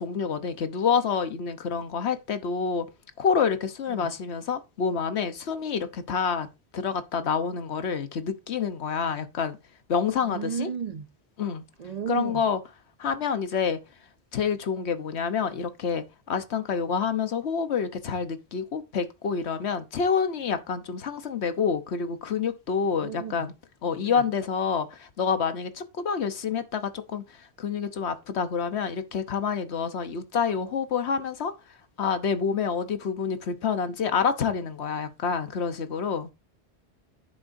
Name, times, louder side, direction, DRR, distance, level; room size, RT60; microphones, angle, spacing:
voice 1, 0.0-2.8 3.2-6.5 6.7-9.6 9.9-10.7 11.4-11.6 12.1-12.6 13.0-13.8 14.3-23.5 23.8-27.2 27.6-31.5 32.0-36.3, left 6 dB, 75° left, 1.3 m, -28 dB
voice 2, 10.3-11.1 11.8-12.4 23.0-23.5 24.0-24.2, right 7 dB, 50° right, 0.5 m, -33 dB
10.0 x 7.5 x 2.6 m
omnidirectional pair, 1.1 m